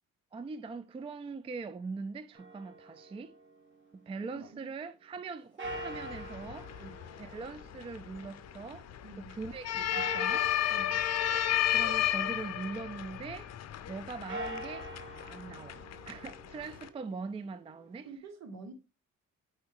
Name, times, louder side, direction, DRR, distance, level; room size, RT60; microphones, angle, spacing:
voice 1, 0.3-3.3 3.9-6.7 7.2-8.9 9.2-10.5 11.7-13.5 13.9-14.9 15.2-15.8 16.1-18.1, right 4 dB, 20° right, 0.3 m, -41 dB
sound 1, 2.4-4.4 5.6-9.0 9.9-12.9 14.1-18.1, right 1 dB, 40° right, 1.9 m, -45 dB
voice 2, 4.3-4.8 6.8-7.0 9.0-9.4 10.7-11.0 18.0-18.7, right 3 dB, 60° right, 1.4 m, -48 dB
sound 2, 5.6-16.9, left 11 dB, 60° left, 0.6 m, -34 dB
4.5 x 4.4 x 4.7 m
cardioid pair, 90°, 30 cm